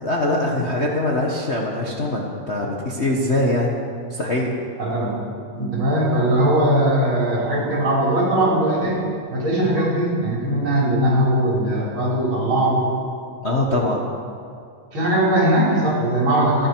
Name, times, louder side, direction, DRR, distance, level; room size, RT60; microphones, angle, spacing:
voice 1, 0.0-3.8 4.1-4.5 13.4-14.1, left 1 dB, 85° left, -2 dB, 0.6 m, -22 dB
voice 2, 4.8-5.1 5.5-9.0 9.3-12.8 14.9-16.7, right 1 dB, 40° right, -5 dB, 4.6 m, -20 dB
27.0 x 11.0 x 4.6 m, 2.4 s
omnidirectional pair, 3.4 m